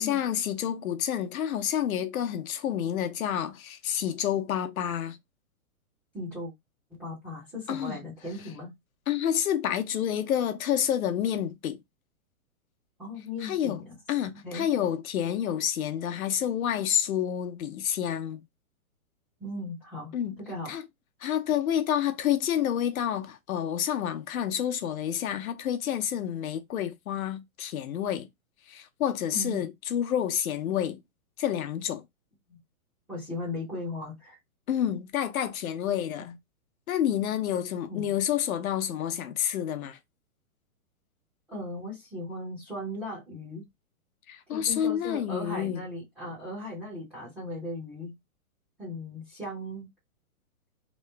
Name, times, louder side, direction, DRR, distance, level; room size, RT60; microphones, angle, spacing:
voice 1, 0.0-5.2 7.7-8.0 9.1-11.8 13.4-13.8 14.1-18.4 20.1-20.4 20.7-20.8 21.2-28.3 28.7-31.0 31.4-32.0 34.7-36.3 36.9-40.0 44.3-45.8, left 10 dB, 75° left, 0.7 m, -29 dB
voice 2, 6.1-6.5 6.9-8.7 13.0-14.0 14.3-14.7 19.4-20.7 29.3-29.7 32.5-32.6 33.1-34.4 36.2-36.3 37.9-38.1 41.5-43.6 44.5-48.1 48.8-49.9, left 1 dB, 5° right, 0.5 m, -37 dB
3.0 x 2.0 x 3.2 m
hypercardioid pair, 160°, 43 cm